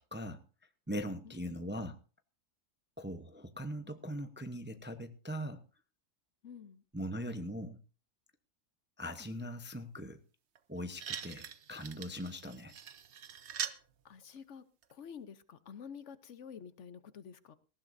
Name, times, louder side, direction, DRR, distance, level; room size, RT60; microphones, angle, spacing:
voice 1, 0.1-0.4 0.9-2.0 3.0-5.6 6.9-7.8 9.0-10.2 10.7-12.7, equal, 10° right, 8 dB, 0.6 m, -40 dB
voice 2, 6.4-6.8 14.0-14.6 14.9-17.5, left 7 dB, 65° left, 13 dB, 1.1 m, -49 dB
sound 1, 10.5-10.6 10.9-13.8 14.8-14.9, right 8 dB, 60° right, 1.1 m, -42 dB
18.5 x 15.0 x 2.6 m, 0.33 s
omnidirectional pair, 1.4 m